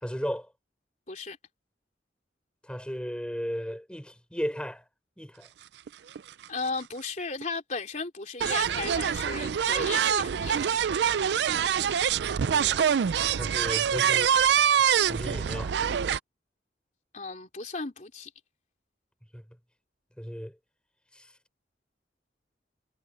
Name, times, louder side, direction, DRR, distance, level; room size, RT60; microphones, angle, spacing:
voice 1, 0.0-0.5 2.6-4.8 5.2-5.5 12.3-13.0 13.3-14.3 15.1-15.7 19.3-19.4 20.2-20.6 21.1-21.3, equal, 5° left, 4.5 m, -35 dB
sound 1, 5.9-6.0 6.1-6.4 7.4-7.5 8.4-16.2, right 8 dB, 70° right, 0.4 m, -25 dB
voice 2, 6.5-10.9 17.1-18.3, left 4 dB, 45° left, 3.4 m, -35 dB
head